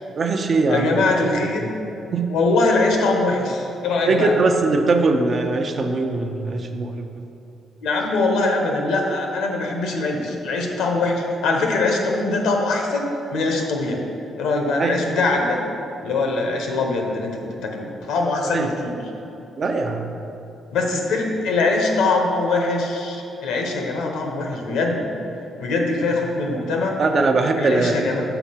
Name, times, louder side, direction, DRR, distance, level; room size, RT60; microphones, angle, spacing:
voice 1, 0.1-1.7 2.1-2.3 4.1-7.1 14.8-15.1 18.5-18.7 19.6-20.1 27.0-28.0, right 3 dB, 45° right, 5 dB, 0.6 m, -21 dB
voice 2, 0.7-1.6 2.3-4.3 7.8-14.0 14.4-15.6 16.0-17.3 17.6-18.9 20.7-25.1 25.6-27.0 27.6-28.2, left 3 dB, 85° left, 1 dB, 0.9 m, -22 dB
5.8 x 4.4 x 5.7 m, 2.8 s
cardioid pair, 90°, 0 cm